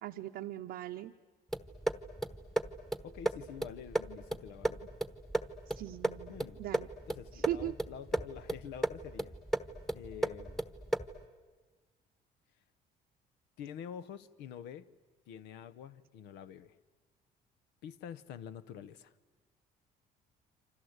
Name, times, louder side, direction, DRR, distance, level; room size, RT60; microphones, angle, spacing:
voice 1, 0.0-1.1 5.7-6.9 7.3-7.7, right 14 dB, 75° right, 3 dB, 0.8 m, -39 dB
sound 1, 1.5-11.2, right 1 dB, ahead, 1.1 m, -36 dB
voice 2, 3.0-4.9 6.3-6.6 7.1-9.3 9.9-10.6 13.6-14.9 15.3-16.7 17.8-19.1, left 8 dB, 90° left, 14 dB, 1.0 m, -47 dB
28.0 x 26.0 x 8.1 m, 1.3 s
cardioid pair, 110°, 17 cm